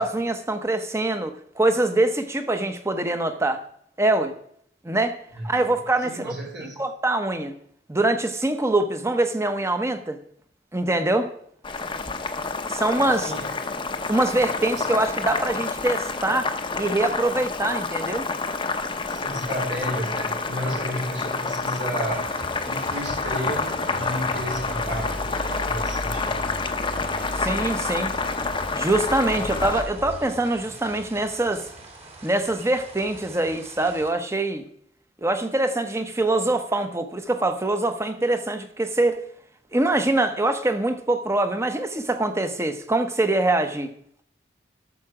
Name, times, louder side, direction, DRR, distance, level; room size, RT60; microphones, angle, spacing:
voice 1, 0.0-3.6 4.0-4.3 4.8-5.1 5.4-6.3 6.8-7.5 7.9-10.2 10.7-11.3 12.7-13.3 14.1-16.5 16.8-18.2 27.3-28.1 28.7-31.7 32.2-34.6 35.2-39.2 39.7-43.9, right 2 dB, 15° right, 8 dB, 0.9 m, -24 dB
voice 2, 5.4-5.7 6.0-6.8 12.9-13.6 14.8-14.9 19.0-22.3 22.6-26.4, equal, 65° right, -2 dB, 2.4 m, -32 dB
Boiling, 11.6-29.8, left 4 dB, 30° left, 0.7 m, -28 dB
sound 1, 22.1-34.1, right 2 dB, 35° right, 2.2 m, -44 dB
sound 2, 23.1-30.2, left 1 dB, 65° left, 1.1 m, -37 dB
12.5 x 6.8 x 4.9 m, 0.66 s
head